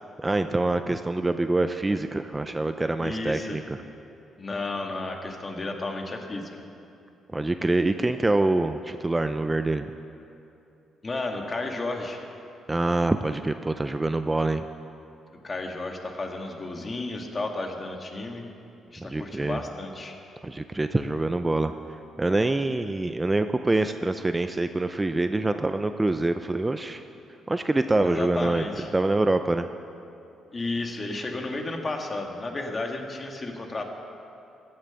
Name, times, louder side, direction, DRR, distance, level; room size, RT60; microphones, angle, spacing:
voice 1, 0.2-3.8 7.3-9.9 12.7-14.6 19.0-19.6 20.4-21.7 22.2-27.0 27.5-28.6 28.9-29.7, right 2 dB, 15° right, 8 dB, 0.5 m, -25 dB
voice 2, 3.0-3.6 4.4-6.5 11.0-12.2 15.4-18.4 18.9-20.1 28.0-28.9 30.5-33.8, left 2 dB, 30° left, 3 dB, 1.7 m, -32 dB
15.5 x 8.7 x 7.0 m, 2.7 s
cardioid pair, 90°, 0 cm